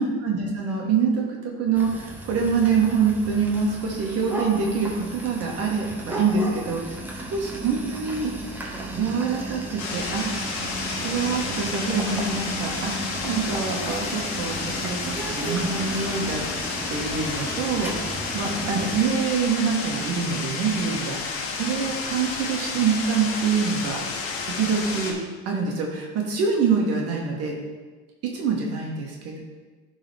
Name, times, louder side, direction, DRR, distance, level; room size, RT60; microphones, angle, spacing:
voice 1, 0.0-7.0 7.3-8.3 8.9-10.3 11.0-12.9 13.2-16.4 16.9-24.0 24.4-25.2 25.4-27.5 28.3-29.4, right 5 dB, 50° right, -1 dB, 1.6 m, -25 dB
sound 1, 1.7-19.0, right 1 dB, 5° right, 1.3 m, -34 dB
sound 2, 9.8-25.1, left 4 dB, 65° left, 1.4 m, -31 dB
11.5 x 4.0 x 3.4 m, 1.3 s
hypercardioid pair, 95°, 32 cm